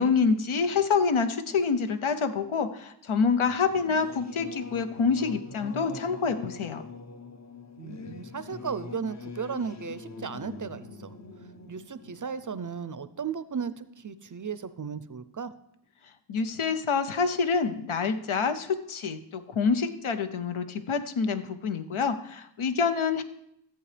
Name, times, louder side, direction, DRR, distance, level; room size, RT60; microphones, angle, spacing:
voice 1, 0.0-6.8 16.3-23.2, left 5 dB, 80° left, 9 dB, 0.8 m, -27 dB
Singing / Musical instrument, 3.4-13.5, left 4 dB, 35° left, 0.6 m, -43 dB
voice 2, 7.8-11.2 11.7-15.5, right 6 dB, 40° right, 13 dB, 0.5 m, -35 dB
14.0 x 7.7 x 3.3 m, 0.76 s
wide cardioid pair, 75°, 48 cm